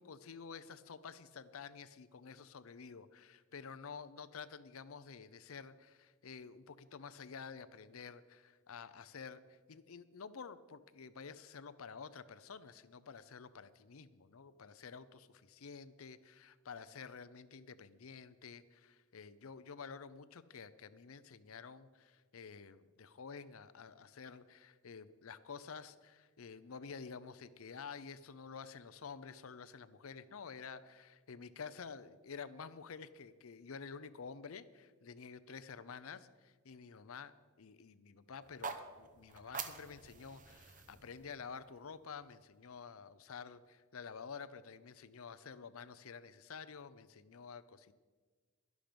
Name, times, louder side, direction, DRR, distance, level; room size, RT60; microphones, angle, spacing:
voice 1, 0.0-37.3 37.6-47.9, left 5 dB, 70° left, 15 dB, 0.6 m, -50 dB
sound 1, 38.4-42.6, right 5 dB, 40° right, 0.9 m, -48 dB
12.0 x 11.5 x 5.2 m, 1.4 s
head